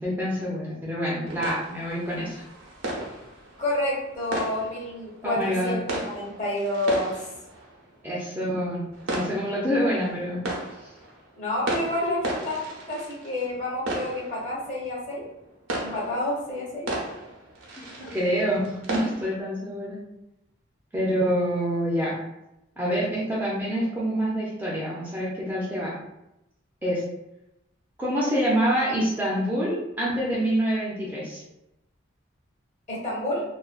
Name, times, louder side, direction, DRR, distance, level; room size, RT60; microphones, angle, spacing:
voice 1, 0.0-2.4 5.2-5.8 8.0-8.8 9.1-10.5 17.8-20.0 20.9-22.1 22.8-25.9 26.8-27.0 28.0-31.4, equal, 10° right, -6 dB, 0.4 m, -26 dB
sound 1, 1.3-19.4, right 1 dB, 80° right, 0.6 m, -35 dB
voice 2, 3.6-7.1 9.7-10.1 11.3-15.3 15.8-16.9 18.0-18.2 32.9-33.4, left 1 dB, 40° left, -6 dB, 0.9 m, -29 dB
2.4 x 2.2 x 2.3 m, 0.88 s
head